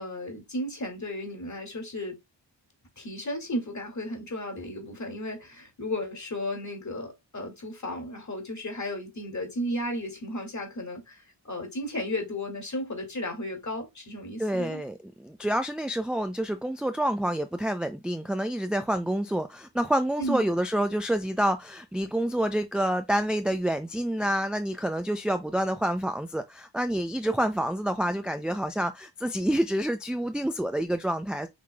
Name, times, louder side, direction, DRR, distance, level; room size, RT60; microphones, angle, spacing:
voice 1, 0.0-2.2 3.0-14.8 20.2-20.4, left 1 dB, 40° left, 2.3 m, -34 dB
voice 2, 14.4-31.5, right 1 dB, ahead, 0.4 m, -28 dB
6.0 x 3.1 x 2.2 m
cardioid pair, 50°, 45 cm